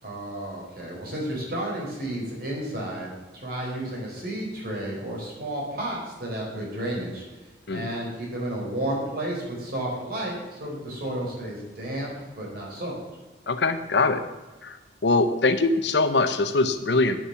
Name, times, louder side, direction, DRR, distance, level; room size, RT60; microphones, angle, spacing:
voice 1, 0.0-7.2 7.7-13.0, right 1 dB, 55° right, -3 dB, 3.9 m, -32 dB
voice 2, 13.5-14.2 14.6-14.8 15.0-17.2, left 3 dB, 65° left, 10 dB, 0.8 m, -22 dB
8.9 x 7.1 x 7.0 m, 1.2 s
head